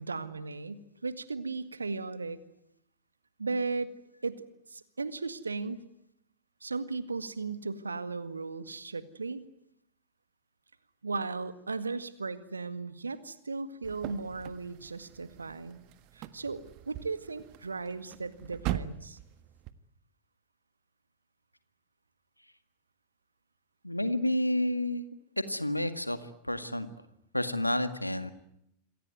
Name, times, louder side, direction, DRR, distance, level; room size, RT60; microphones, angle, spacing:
voice 1, 0.0-2.4 3.4-3.9 4.2-5.8 6.6-9.4 11.0-15.8 16.1-19.2, right 4 dB, 75° right, 12 dB, 1.9 m, -36 dB
sound 1, 13.8-19.7, right 12 dB, 40° right, 1.5 m, -41 dB
voice 2, 23.8-25.1 25.5-26.2 26.4-26.9 27.3-28.3, left 1 dB, 85° left, 11 dB, 1.9 m, -29 dB
27.5 x 22.5 x 9.4 m, 0.77 s
figure-of-eight pair, 90°, 0 cm